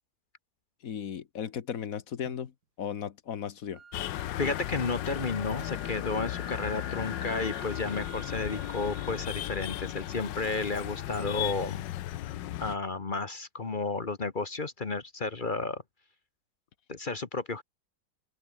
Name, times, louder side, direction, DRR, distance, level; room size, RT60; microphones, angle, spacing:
voice 1, 0.8-3.8, left 8 dB, 55° left, 1.5 m, -36 dB
sound 1, 3.7-11.7, right 5 dB, 65° right, 2.8 m, -50 dB
sound 2, 3.9-12.8, left 14 dB, 90° left, 1.4 m, -36 dB
voice 2, 4.4-11.9 12.6-15.8 16.9-17.6, left 3 dB, 30° left, 1.2 m, -32 dB
open air
omnidirectional pair, 1.9 m